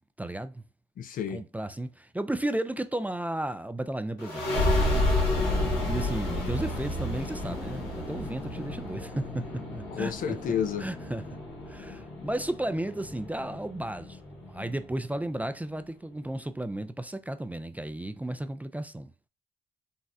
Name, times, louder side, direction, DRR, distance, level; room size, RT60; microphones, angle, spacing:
voice 1, 0.2-0.6 1.3-4.4 5.9-10.4 10.8-11.4 11.7-19.1, right 1 dB, 10° right, 0.3 m, -34 dB
voice 2, 1.0-1.4 5.6-6.0 9.9-10.9, left 8 dB, 65° left, 0.5 m, -31 dB
sound 1, 4.2-15.5, left 1 dB, 85° left, 1.1 m, -31 dB
4.0 x 2.1 x 2.4 m
supercardioid pair, 50°, 15 cm